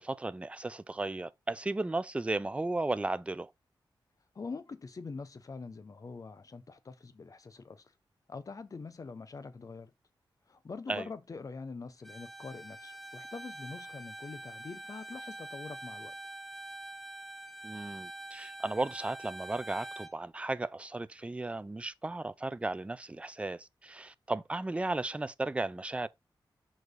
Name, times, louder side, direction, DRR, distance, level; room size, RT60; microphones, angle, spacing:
voice 1, 0.0-3.5 10.9-11.1 17.6-26.1, right 2 dB, 15° right, 0.4 m, -35 dB
voice 2, 4.3-7.9 8.3-9.9 10.5-16.1, left 4 dB, 45° left, 0.9 m, -44 dB
Bowed string instrument, 12.0-20.2, right 1 dB, ahead, 0.9 m, -45 dB
6.3 x 3.1 x 5.2 m
wide cardioid pair, 100°, 8 cm